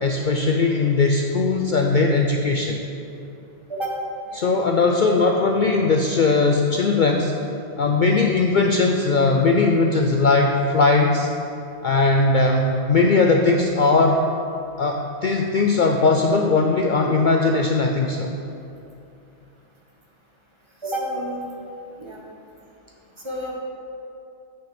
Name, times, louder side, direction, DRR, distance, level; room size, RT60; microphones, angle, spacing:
voice 1, 0.0-2.8 4.4-7.3 7.8-11.3 11.8-14.2 14.8-18.3, left 3 dB, 55° left, 2 dB, 0.6 m, -19 dB
voice 2, 3.7-4.0 4.3-4.5 20.8-21.4 22.0-22.2 23.2-23.5, right 1 dB, 25° right, -3 dB, 1.4 m, -29 dB
7.7 x 6.3 x 6.8 m, 2.7 s
omnidirectional pair, 1.2 m